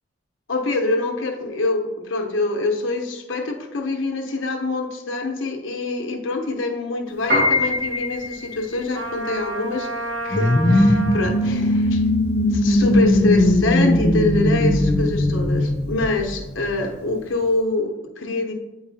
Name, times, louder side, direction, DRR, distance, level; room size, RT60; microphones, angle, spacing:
voice 1, 0.5-12.0 12.5-18.5, left 3 dB, 80° left, 3 dB, 0.9 m, -25 dB
Piano, 7.1-17.5, left 2 dB, 55° right, 2.3 m, -27 dB
Trumpet, 8.9-11.5, right 1 dB, 85° right, 1.2 m, -30 dB
sound 1, 10.3-16.8, left 1 dB, 20° left, 0.3 m, -19 dB
8.7 x 4.7 x 2.7 m, 1.0 s
head